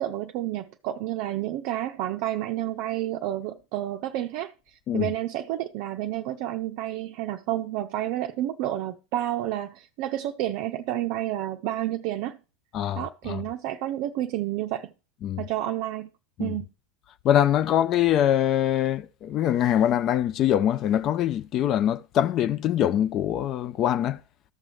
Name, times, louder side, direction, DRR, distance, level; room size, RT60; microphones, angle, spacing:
voice 1, 0.0-4.5 4.9-12.4 13.0-14.9 15.4-16.1 16.4-16.7, right 13 dB, 55° right, 0.5 m, -30 dB
voice 2, 12.7-13.4 15.2-15.4 16.4-16.6 17.2-24.2, left 11 dB, 45° left, 0.4 m, -23 dB
13.5 x 6.1 x 3.2 m
hypercardioid pair, 85°, 0 cm